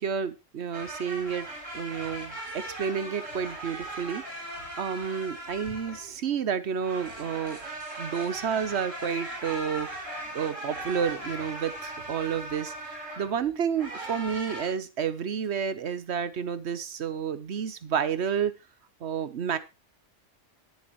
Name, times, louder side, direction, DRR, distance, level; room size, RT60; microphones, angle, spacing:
voice 1, 0.0-1.5 1.7-7.6 8.0-18.5 19.0-19.6, right 7 dB, 65° right, 14 dB, 1.1 m, -30 dB
sound 1, 0.7-6.2 6.8-13.3 13.7-14.7, right 1 dB, 90° right, 4.6 m, -39 dB
19.0 x 7.1 x 3.0 m, 0.26 s
omnidirectional pair, 1.3 m